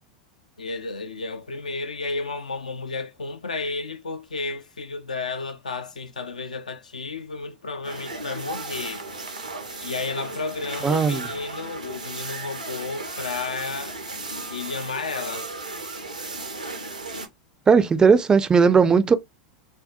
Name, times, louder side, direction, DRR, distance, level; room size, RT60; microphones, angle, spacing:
voice 1, 0.6-9.1 9.8-14.0 14.5-15.5, left 3 dB, 80° left, 0.4 m, -32 dB
sound 1, 7.8-17.3, right 3 dB, 90° right, 0.6 m, -35 dB
voice 2, 10.8-11.3 17.7-19.1, right 5 dB, 20° right, 0.3 m, -17 dB
2.5 x 2.2 x 2.4 m
figure-of-eight pair, 90°, 4 cm